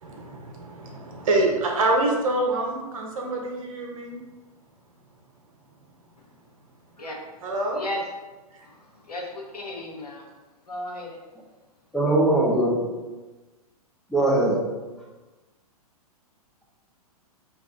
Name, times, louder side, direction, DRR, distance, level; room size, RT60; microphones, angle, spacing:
voice 1, 0.0-4.2 7.4-7.8, right 2 dB, 60° right, 0 dB, 1.0 m, -26 dB
voice 2, 7.7-8.1 8.6-10.3 10.7-11.2, left 1 dB, 85° left, 0 dB, 1.0 m, -35 dB
voice 3, 11.9-12.9 14.1-14.8, right 1 dB, ahead, -4 dB, 0.8 m, -21 dB
4.6 x 2.7 x 3.6 m, 1.2 s
figure-of-eight pair, 110°, 19 cm